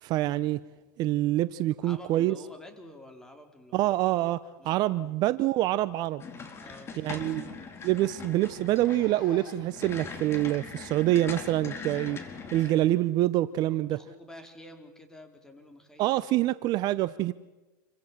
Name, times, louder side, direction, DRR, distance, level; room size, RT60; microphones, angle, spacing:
voice 1, 0.0-0.6 1.0-2.3 3.7-6.2 7.0-7.4 7.8-12.2 12.5-14.0 16.0-17.3, right 15 dB, 40° right, 0.8 m, -26 dB
voice 2, 1.8-3.9 4.6-5.2 6.6-7.4 13.5-16.2 16.8-17.0, left 1 dB, 5° left, 4.3 m, -50 dB
Zipper (clothing), 5.2-5.4 5.7-5.8 6.2-6.3 6.7-6.8 7.0-7.2 7.8-9.8 10.5-10.6 11.7-11.8, left 8 dB, 85° left, 4.3 m, -50 dB
sound 1, 6.2-12.9, left 5 dB, 25° left, 4.4 m, -41 dB
28.0 x 24.5 x 7.4 m
hypercardioid pair, 120°, 10 cm